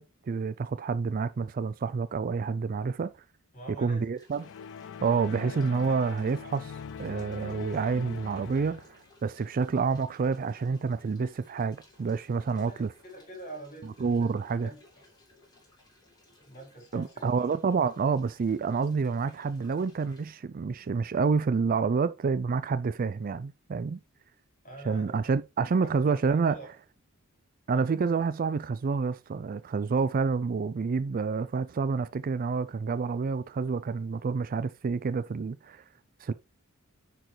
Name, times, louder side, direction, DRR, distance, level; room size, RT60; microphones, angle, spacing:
voice 1, 0.0-3.1 3.8-4.5 5.0-6.7 7.0-12.9 14.0-14.7 16.9-24.0 24.8-26.6 27.7-35.8 36.2-36.3, right 5 dB, 40° right, 0.4 m, -28 dB
voice 2, 3.5-4.1 12.5-14.8 16.4-17.5 24.6-25.3 25.8-26.8, right 2 dB, 35° left, 4.8 m, -46 dB
sound 1, 4.2-20.3, left 2 dB, 20° left, 3.8 m, -60 dB
sound 2, 4.4-9.0, left 7 dB, 60° left, 0.4 m, -42 dB
10.0 x 4.6 x 3.2 m
head